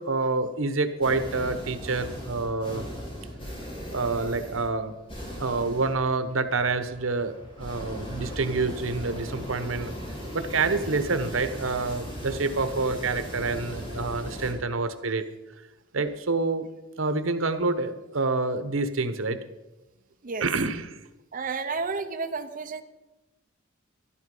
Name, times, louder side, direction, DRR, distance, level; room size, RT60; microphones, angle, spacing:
voice 1, 0.0-2.9 3.9-5.0 5.4-9.9 10.3-15.3 15.9-16.7 17.0-19.4 20.4-21.0, right 3 dB, 90° right, 10 dB, 1.0 m, -27 dB
sound 1, 1.0-14.5, equal, 25° left, 3.6 m, -38 dB
voice 2, 21.3-22.8, right 4 dB, 45° right, 5 dB, 0.7 m, -31 dB
12.5 x 12.0 x 5.4 m, 1.0 s
head